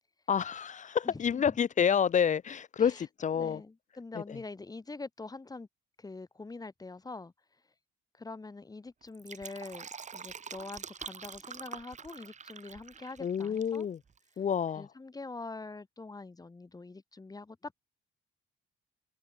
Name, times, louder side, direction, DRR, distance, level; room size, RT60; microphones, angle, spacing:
voice 1, 0.3-3.6 4.1-4.2 13.2-14.0 14.4-14.9, left 7 dB, 40° left, 0.6 m, -29 dB
voice 2, 1.0-1.6 2.8-3.0 3.3-5.7 6.0-7.3 8.1-13.9 14.7-17.7, left 3 dB, 20° left, 1.1 m, -44 dB
Fill (with liquid), 9.0-13.8 14.1-14.2, right 6 dB, 35° right, 1.1 m, -45 dB
cardioid pair, 90°, 20 cm